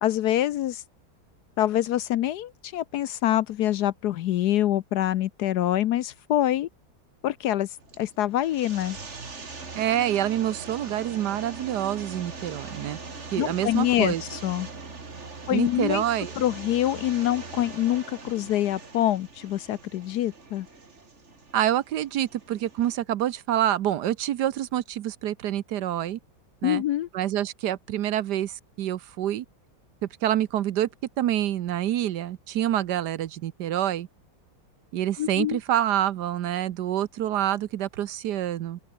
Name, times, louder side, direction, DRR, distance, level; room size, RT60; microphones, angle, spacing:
voice 1, 0.0-0.8 1.6-6.7 7.2-9.0 13.4-14.7 15.5-16.0 16.4-20.7 26.6-27.1 35.2-35.6, left 13 dB, 70° left, 1.1 m, -25 dB
sound 1, 7.8-23.0, right 4 dB, 40° right, 2.7 m, -41 dB
voice 2, 9.8-13.0 13.3-14.2 15.5-16.3 21.5-26.2 26.6-26.8 27.1-29.4 30.2-30.9 31.2-34.1 34.9-38.8, right 12 dB, 70° right, 1.3 m, -27 dB
open air
omnidirectional pair, 2.0 m